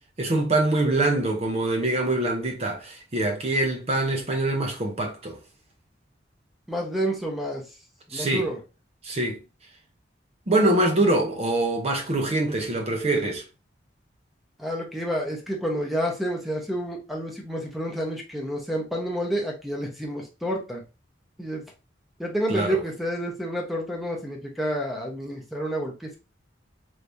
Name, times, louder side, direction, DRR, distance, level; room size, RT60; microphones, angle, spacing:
voice 1, 0.2-5.4 8.1-8.4 9.0-9.4 10.5-13.4 22.5-22.8, right 2 dB, 35° right, 0.6 m, -24 dB
voice 2, 6.7-7.6 8.1-8.6 14.6-20.8 21.4-21.6 22.2-26.2, equal, ahead, 0.8 m, -29 dB
3.3 x 3.1 x 2.6 m
head